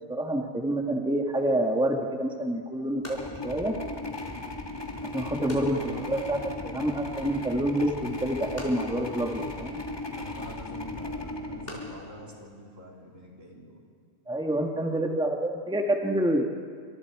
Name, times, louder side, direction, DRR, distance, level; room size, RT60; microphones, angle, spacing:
voice 1, 0.1-3.2 3.4-3.7 5.0-9.8 14.3-16.5, right 1 dB, 5° right, 2 dB, 1.4 m, -28 dB
sound 1, 2.0-13.3, left 1 dB, 45° left, 4.8 m, -49 dB
sound 2, 3.0-12.4, left 2 dB, 20° left, 1.7 m, -37 dB
voice 2, 5.4-5.9 10.2-13.9, right 1 dB, 65° right, -2 dB, 3.8 m, -46 dB
28.0 x 25.0 x 4.8 m, 2.1 s
omnidirectional pair, 1.4 m